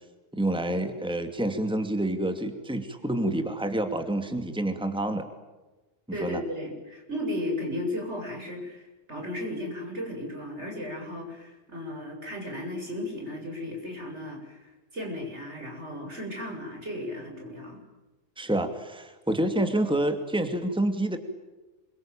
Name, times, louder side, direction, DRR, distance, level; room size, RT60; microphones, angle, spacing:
voice 1, 0.3-5.3 6.1-6.4 18.4-21.2, right 1 dB, 5° right, 7 dB, 2.5 m, -28 dB
voice 2, 6.1-17.8, left 1 dB, 70° right, 2 dB, 8.1 m, -35 dB
27.5 x 24.0 x 9.0 m, 1.1 s
omnidirectional pair, 1.2 m